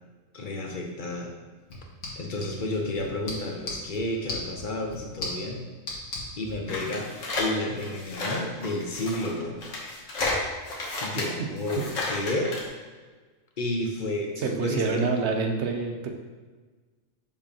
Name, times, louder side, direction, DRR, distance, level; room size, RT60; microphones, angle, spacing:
voice 1, 0.3-1.3 2.2-5.6 6.4-7.1 7.4-9.6 11.0-12.5 13.6-15.3, left 2 dB, 45° left, 1 dB, 0.9 m, -31 dB
sound 1, 1.6-6.6, left 2 dB, 85° left, 1.8 m, -38 dB
sound 2, 6.7-12.7, left 2 dB, 70° left, 1.5 m, -32 dB
voice 2, 14.4-16.1, right 4 dB, 60° right, 3 dB, 1.0 m, -27 dB
7.1 x 5.1 x 2.9 m, 1.4 s
omnidirectional pair, 1.4 m